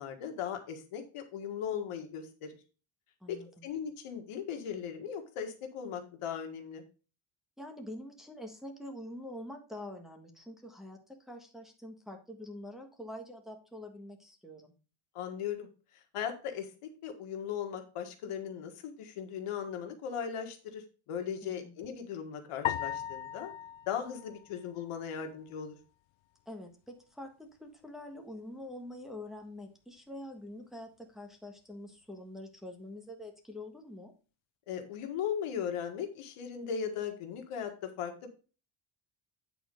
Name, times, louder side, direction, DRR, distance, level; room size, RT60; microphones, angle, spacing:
voice 1, 0.0-2.6 3.3-6.8 15.1-16.7 17.0-23.5 23.9-25.8 34.7-38.3, left 8 dB, 90° left, 4 dB, 1.8 m, -38 dB
voice 2, 3.2-3.7 7.6-14.7 21.4-21.7 26.5-34.1, left 1 dB, ahead, 2 dB, 1.4 m, -45 dB
sound 1, 22.6-25.1, left 11 dB, 65° left, 0.6 m, -38 dB
9.1 x 4.3 x 5.2 m, 0.35 s
cardioid pair, 145°, 50 cm